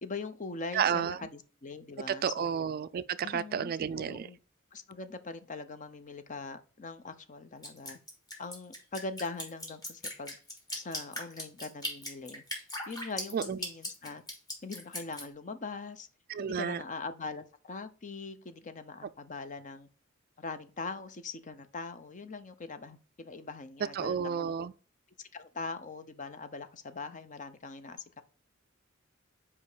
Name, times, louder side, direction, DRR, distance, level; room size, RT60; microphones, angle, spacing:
voice 1, 0.0-2.5 3.2-4.4 4.7-8.0 8.4-10.4 10.7-12.4 12.9-14.2 14.6-16.1 16.4-19.9 20.4-24.5 25.2-28.2, left 3 dB, 40° left, 0.7 m, -42 dB
voice 2, 0.7-1.2 2.2-4.3 13.3-13.6 16.3-16.8 24.0-24.7, right 7 dB, 45° right, 0.3 m, -31 dB
Drip, 7.6-15.2, left 1 dB, 20° left, 2.2 m, -39 dB
5.3 x 4.8 x 4.9 m
head